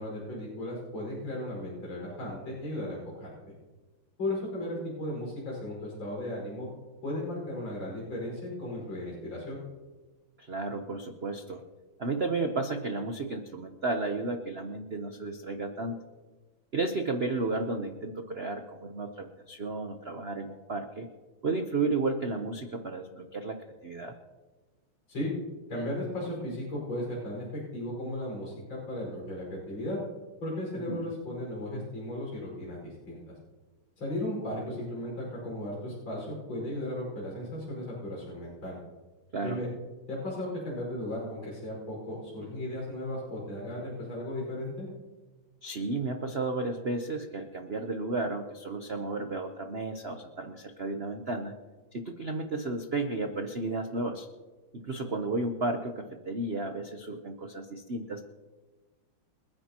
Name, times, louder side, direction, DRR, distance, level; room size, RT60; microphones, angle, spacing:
voice 1, 0.0-3.3 4.2-6.7 7.0-9.6 25.1-25.3 25.7-30.0 30.4-33.3 34.0-38.8 39.4-39.7 40.1-44.9, left 1 dB, 70° left, -5 dB, 6.1 m, -36 dB
voice 2, 10.4-11.6 12.0-16.0 16.7-21.1 21.4-24.2 30.9-31.1 39.3-39.6 45.6-51.5 51.9-54.3 54.7-58.2, right 3 dB, 50° right, 5 dB, 0.7 m, -33 dB
29.5 x 10.0 x 3.0 m, 1.2 s
omnidirectional pair, 2.3 m